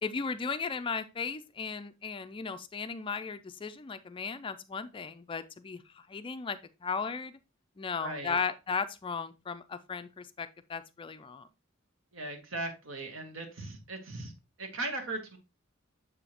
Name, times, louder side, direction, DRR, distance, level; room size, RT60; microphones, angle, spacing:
voice 1, 0.0-7.4 7.8-11.5, left 5 dB, 25° left, 0.4 m, -36 dB
voice 2, 8.0-8.4 12.1-14.3 14.6-15.4, right 2 dB, 75° right, 1.6 m, -38 dB
7.0 x 5.0 x 2.9 m
head